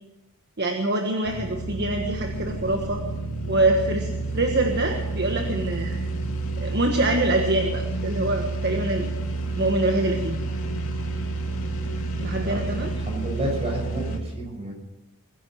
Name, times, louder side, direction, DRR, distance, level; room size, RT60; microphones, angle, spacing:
voice 1, 0.6-3.0 3.5-6.0 6.6-9.1 9.6-10.4 12.2-12.9, right 2 dB, 50° right, 3 dB, 1.5 m, -25 dB
sound 1, 1.2-14.2, right 2 dB, 70° left, 2.7 m, -29 dB
voice 2, 12.3-12.6 13.0-14.7, right 1 dB, 25° right, 0 dB, 6.6 m, -31 dB
21.0 x 10.5 x 6.5 m, 0.98 s
head